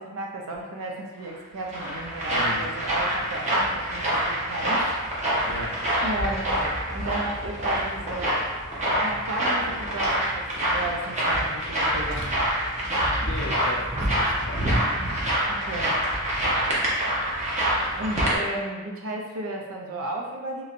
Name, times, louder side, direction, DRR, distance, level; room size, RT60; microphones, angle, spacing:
voice 1, 0.0-5.0 6.0-6.5 6.9-8.3 8.9-12.3 15.5-16.0 18.0-20.6, right 1 dB, 75° right, 0 dB, 0.5 m, -33 dB
sound 1, 1.3-18.4, right 1 dB, 35° right, 0.6 m, -26 dB
voice 2, 2.3-2.6 5.4-5.8 12.1-12.3 13.1-14.9 16.5-17.0, left 2 dB, 60° left, 1 dB, 0.4 m, -38 dB
3.0 x 2.6 x 2.5 m, 1.2 s
head